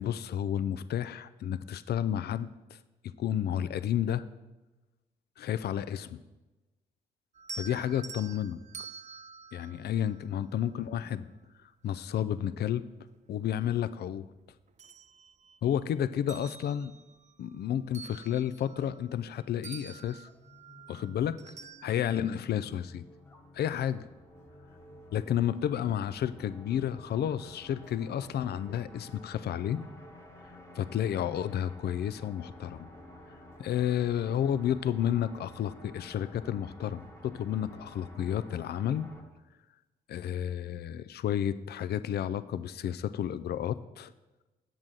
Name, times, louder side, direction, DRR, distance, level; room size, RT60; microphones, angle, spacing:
voice 1, 0.0-2.8 3.2-4.3 5.4-6.2 7.5-8.6 9.5-11.3 11.8-12.8 13.3-14.3 15.6-16.9 17.4-20.3 20.9-21.4 21.8-23.0 23.5-24.0 25.1-29.8 30.8-32.9 33.6-39.1 40.1-44.1, left 10 dB, 55° left, 14 dB, 0.4 m, -31 dB
sound 1, 7.3-10.7 12.3-12.4 13.0-14.2 14.5-15.8 16.1-19.3 19.6-22.3, right 5 dB, 35° right, 0.4 m, -48 dB
sound 2, 20.3-39.2, left 1 dB, 15° left, 1.2 m, -52 dB
7.4 x 6.1 x 3.8 m, 1.1 s
hypercardioid pair, 40°, 20 cm